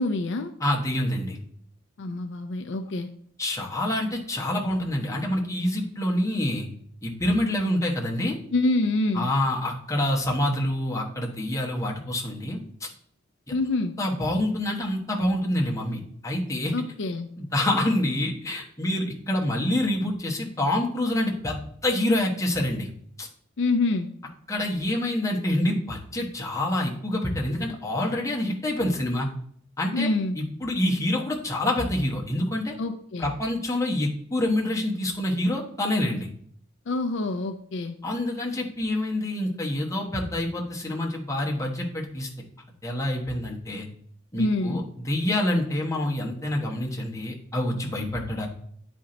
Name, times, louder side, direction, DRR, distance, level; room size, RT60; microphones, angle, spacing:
voice 1, 0.0-0.5 2.0-3.1 8.5-9.3 13.5-14.0 16.7-17.3 23.6-24.1 29.9-30.4 32.8-33.3 36.9-38.0 44.4-44.8, left 2 dB, 60° left, 8 dB, 0.4 m, -26 dB
voice 2, 0.6-1.4 3.4-6.7 7.0-8.4 9.1-12.9 14.0-16.7 17.4-22.9 23.2-23.3 24.5-29.3 29.8-30.1 30.4-32.7 33.2-36.3 38.0-42.3 42.8-43.9 44.3-48.5, left 1 dB, 15° left, -2 dB, 1.1 m, -27 dB
9.4 x 4.3 x 3.9 m, 0.63 s
head